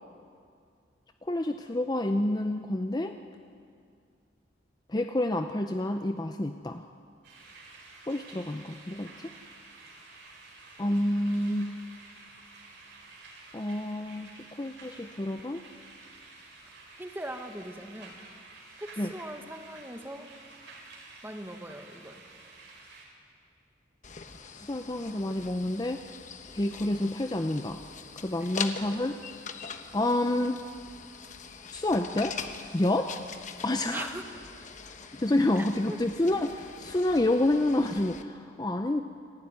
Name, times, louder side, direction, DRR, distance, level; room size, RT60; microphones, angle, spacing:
voice 1, 1.2-3.2 4.9-6.8 8.1-9.3 10.8-11.7 13.5-15.6 19.0-19.1 24.7-26.0 26.5-27.8 28.2-29.2 29.9-30.6 31.7-32.4 32.7-33.2 33.6-34.1 34.8-39.0, left 1 dB, 20° left, 7 dB, 0.6 m, -28 dB
sound 1, 7.2-23.0, right 3 dB, 70° right, 4.4 m, -51 dB
voice 2, 17.0-18.2 18.8-20.3 21.2-22.2 28.4-28.5 33.8-34.2 35.9-36.0, right 1 dB, 10° right, 5 dB, 1.5 m, -40 dB
sound 2, 24.0-38.2, left 6 dB, 40° left, 1.1 m, -43 dB
28.5 x 12.5 x 9.5 m, 2.3 s
head